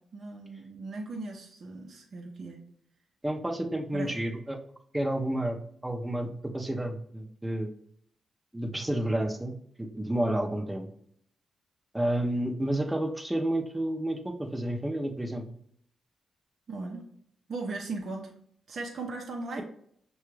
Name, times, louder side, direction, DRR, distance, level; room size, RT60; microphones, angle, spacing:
voice 1, 0.0-2.6 3.9-4.2 16.7-17.1 17.5-18.3 18.7-19.6, right 3 dB, 55° right, 0 dB, 0.6 m, -38 dB
voice 2, 3.2-4.6 4.9-5.6 5.8-7.7 8.5-10.9 11.9-15.5, right 1 dB, 10° right, 4 dB, 0.7 m, -30 dB
5.7 x 2.3 x 3.2 m, 0.66 s
cardioid pair, 75°, 0 cm